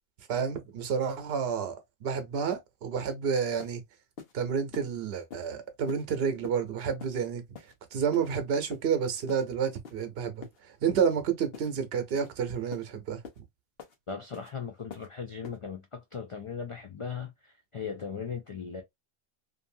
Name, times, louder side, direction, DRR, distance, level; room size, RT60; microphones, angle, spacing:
voice 1, 0.3-3.8 4.3-7.4 7.9-10.4 10.8-13.2, right 7 dB, 70° right, 0.9 m, -30 dB
sound 1, 3.1-3.2 3.6-3.8 4.2-4.3 4.7-4.9 5.3-5.5 5.9-6.0 6.4-6.6 7.0-7.2 7.5-7.7 8.1-8.3 8.7-8.9 9.3-9.4 9.8-10.0 10.4-10.6 11.0-11.2 11.5-11.7 12.1-12.3 12.7-12.9 13.2-13.4 13.8-14.0 14.3-14.5 14.9-15.1 15.4-15.6, left 6 dB, 70° left, 0.9 m, -45 dB
voice 2, 14.1-18.8, left 6 dB, 50° left, 0.4 m, -38 dB
2.6 x 2.5 x 2.6 m
omnidirectional pair, 1.1 m